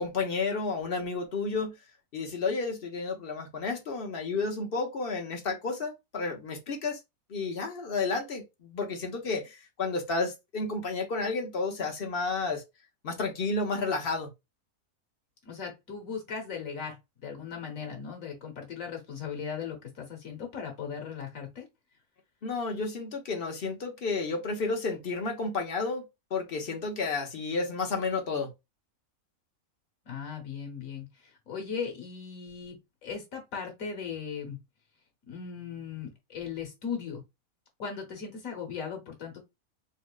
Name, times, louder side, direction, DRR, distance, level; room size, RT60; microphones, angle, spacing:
voice 1, 0.0-1.7 2.1-7.0 7.3-12.6 13.0-14.3 22.4-28.5, left 3 dB, 45° left, 1.0 m, -31 dB
voice 2, 15.4-17.0 17.2-21.7 30.0-32.8 33.0-34.6 35.3-37.2 37.8-39.4, left 6 dB, 65° left, 1.6 m, -38 dB
4.1 x 2.7 x 2.3 m
omnidirectional pair, 1.5 m